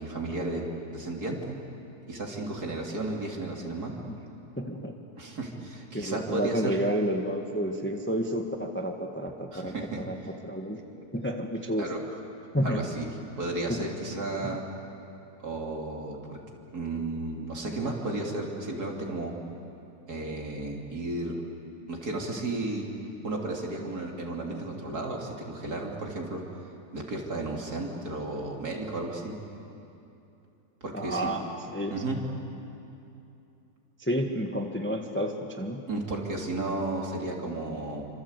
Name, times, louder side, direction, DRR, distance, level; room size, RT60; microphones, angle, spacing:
voice 1, 0.0-1.6 2.1-3.9 5.2-6.8 9.5-10.0 11.8-12.0 12.6-13.1 13.4-14.6 15.4-16.4 16.7-19.3 20.1-21.4 21.9-22.9 23.2-26.6 26.9-29.3 30.8-31.3 31.9-32.2 35.9-38.1, right 2 dB, 55° right, 0 dB, 3.6 m, -33 dB
voice 2, 4.6-5.0 5.9-10.2 10.4-10.8 11.1-11.9 12.5-12.8 13.7-13.8 14.4-14.5 30.9-31.4 31.7-31.9 34.0-35.8, equal, 5° left, 3 dB, 1.3 m, -30 dB
28.0 x 26.0 x 8.3 m, 2.8 s
omnidirectional pair, 1.9 m